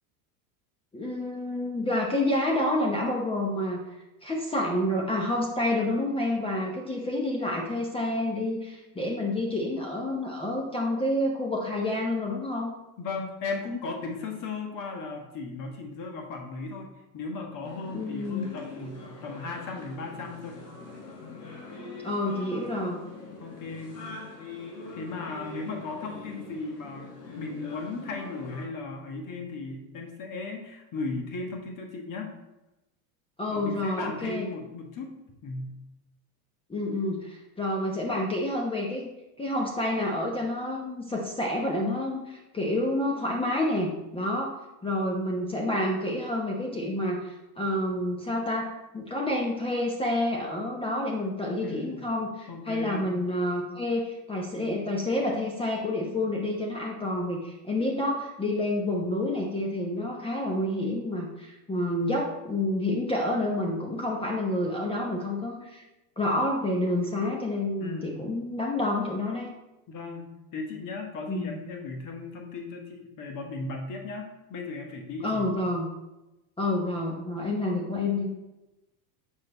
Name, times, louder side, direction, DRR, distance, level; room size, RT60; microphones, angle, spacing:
voice 1, 0.9-3.8 4.2-12.7 17.9-18.5 22.0-23.0 33.4-34.5 36.7-39.1 39.4-44.5 44.8-65.8 66.2-69.5 71.3-71.6 75.2-75.9 76.6-78.3, left 1 dB, 10° left, -1 dB, 0.9 m, -29 dB
voice 2, 13.0-20.6 23.4-23.9 24.9-32.3 33.5-35.1 35.4-35.7 51.6-52.0 52.5-53.1 67.8-68.2 69.9-70.2 70.5-75.5, left 3 dB, 40° left, 2 dB, 1.4 m, -36 dB
sound 1, 17.6-28.7, left 3 dB, 90° left, 1.9 m, -43 dB
6.6 x 5.3 x 4.1 m, 1.0 s
supercardioid pair, 120°, 48 cm